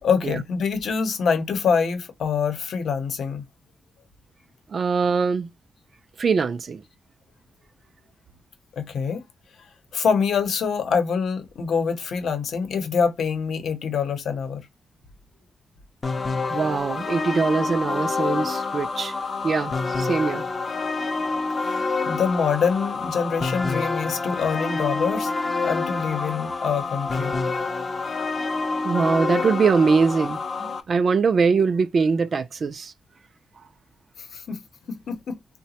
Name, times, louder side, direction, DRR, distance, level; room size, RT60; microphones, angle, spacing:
voice 1, 0.0-3.4 8.8-9.2 9.9-14.7 21.6-25.3 25.6-27.3 34.3-34.6 34.9-35.4, left 6 dB, 75° left, 0.8 m, -25 dB
voice 2, 4.7-5.5 6.2-6.8 16.5-19.1 19.4-20.4 28.8-32.9, right 5 dB, 50° right, 0.3 m, -22 dB
sound 1, 16.0-30.8, left 3 dB, 35° left, 0.5 m, -27 dB
3.8 x 2.1 x 2.8 m
wide cardioid pair, 120°, 0 cm